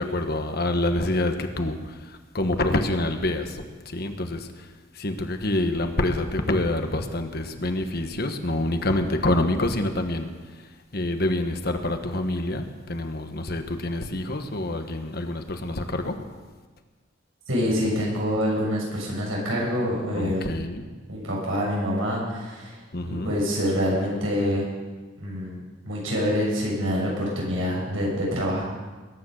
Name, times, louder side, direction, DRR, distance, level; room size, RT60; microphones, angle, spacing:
voice 1, 0.0-4.7 4.9-10.7 10.9-16.2 20.2-20.9 22.9-23.3, left 1 dB, 50° left, 6 dB, 1.3 m, -27 dB
voice 2, 17.5-20.5 21.1-22.8 23.0-24.7 25.2-28.6, equal, 85° right, -3 dB, 7.0 m, -26 dB
21.0 x 10.5 x 6.5 m, 1.3 s
head